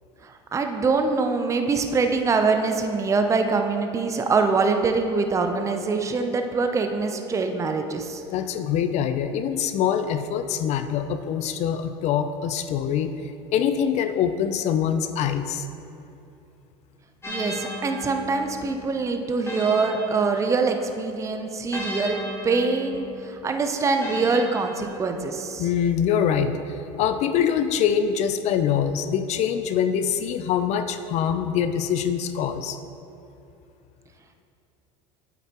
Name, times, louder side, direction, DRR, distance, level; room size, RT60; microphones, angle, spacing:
voice 1, 0.2-8.2 17.3-22.2 22.4-25.7, right 4 dB, 20° right, 5 dB, 0.6 m, -24 dB
voice 2, 8.3-13.2 13.5-15.7 25.6-26.6 27.0-32.8, left 8 dB, 50° left, 9 dB, 0.5 m, -24 dB
sound 1, 17.2-20.9 21.7-25.4, left 1 dB, 15° left, 1.5 m, -37 dB
8.4 x 8.2 x 2.9 m, 2.8 s
supercardioid pair, 100°, 15 cm